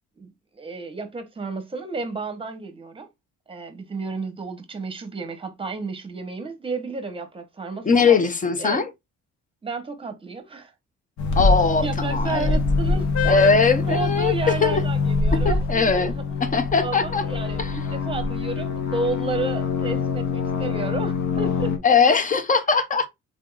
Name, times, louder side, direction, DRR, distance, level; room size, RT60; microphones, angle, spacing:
voice 1, 0.2-3.1 3.5-8.2 8.6-8.8 9.6-10.7 11.8-13.4 13.8-16.5 16.8-21.8, right 4 dB, 15° right, 0.8 m, -32 dB
voice 2, 7.8-8.9 11.4-12.6 13.3-14.8 15.3-16.1 16.4-17.2 17.6-17.7 21.8-23.1, left 5 dB, 25° left, 0.6 m, -20 dB
sound 1, 11.2-21.8, left 4 dB, 60° left, 0.9 m, -24 dB
3.6 x 3.4 x 2.4 m
cardioid pair, 140°, 31 cm